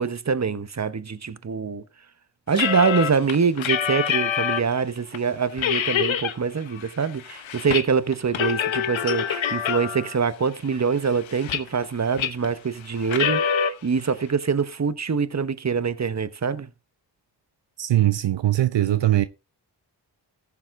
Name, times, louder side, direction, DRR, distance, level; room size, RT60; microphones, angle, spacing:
voice 1, 0.0-1.8 2.5-16.7, right 5 dB, 35° right, 1.1 m, -24 dB
sound 1, 2.5-4.7 5.1-5.2 5.6-6.3 6.7-7.8 8.1-10.2 10.7-11.9 12.2-12.5 13.0-13.7, left 8 dB, 90° left, 1.0 m, -25 dB
voice 2, 17.8-19.2, right 13 dB, 70° right, 0.7 m, -20 dB
14.5 x 7.3 x 3.7 m
cardioid pair, 45°, 45 cm